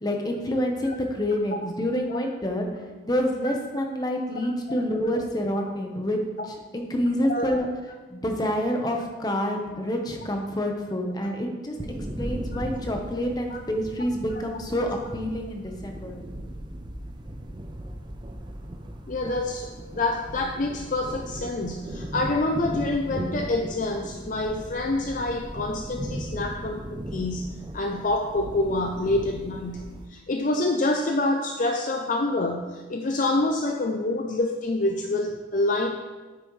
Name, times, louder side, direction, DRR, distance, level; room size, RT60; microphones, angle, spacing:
voice 1, 0.0-2.7 3.0-6.2 6.5-7.7 8.1-11.7 12.2-16.2, equal, 20° left, 2 dB, 0.9 m, -27 dB
sound 1, 11.8-30.1, right 1 dB, 25° right, 0.5 m, -37 dB
voice 2, 19.1-36.0, left 2 dB, 40° left, 3 dB, 0.5 m, -27 dB
9.5 x 8.3 x 3.2 m, 1.3 s
head